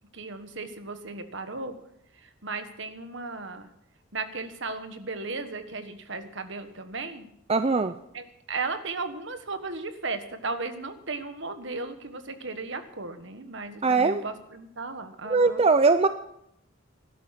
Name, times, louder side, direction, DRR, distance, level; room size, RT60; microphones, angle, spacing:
voice 1, 0.1-1.7 2.2-3.7 4.1-7.3 8.1-15.6, right 3 dB, 60° right, 9 dB, 1.5 m, -35 dB
voice 2, 7.5-7.9 13.8-14.2 15.3-16.1, right 4 dB, 30° right, 10 dB, 0.5 m, -21 dB
17.0 x 12.0 x 5.9 m, 0.78 s
head